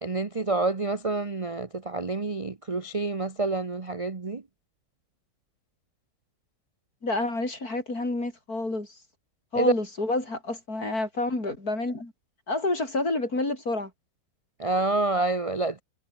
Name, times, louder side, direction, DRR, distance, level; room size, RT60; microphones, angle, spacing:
voice 1, 0.0-4.4 9.5-9.7 14.6-15.8, right 3 dB, 25° right, 0.8 m, -28 dB
voice 2, 7.0-8.9 9.5-12.1 12.5-13.9, left 2 dB, 55° left, 6.5 m, -28 dB
omnidirectional pair, 1.9 m